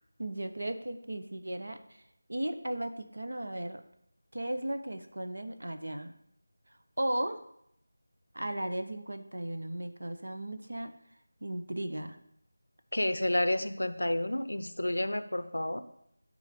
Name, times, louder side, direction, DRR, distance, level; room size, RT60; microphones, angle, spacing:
voice 1, 0.2-1.8 2.3-3.8 4.3-6.1 7.0-7.4 8.3-10.9 11.4-12.2, right 1 dB, 65° right, 8 dB, 0.8 m, -35 dB
voice 2, 12.9-15.8, left 1 dB, 75° left, 11 dB, 0.6 m, -30 dB
9.6 x 3.9 x 5.0 m, 0.75 s
figure-of-eight pair, 165°, 0 cm